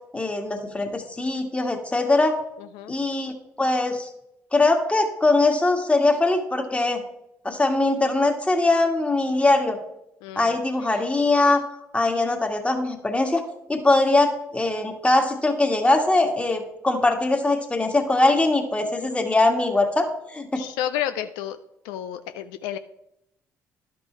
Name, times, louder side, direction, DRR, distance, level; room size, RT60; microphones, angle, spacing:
voice 1, 0.1-2.4 2.9-3.3 3.6-4.1 4.5-7.0 7.5-9.8 10.4-11.6 11.9-13.4 13.7-20.6, left 2 dB, 15° left, 4 dB, 1.8 m, -21 dB
voice 2, 2.6-2.9 10.2-10.6 10.9-11.0 20.6-21.6 21.8-22.8, left 11 dB, 80° left, 10 dB, 0.4 m, -31 dB
11.5 x 5.4 x 4.5 m, 0.84 s
hypercardioid pair, 55°, 7 cm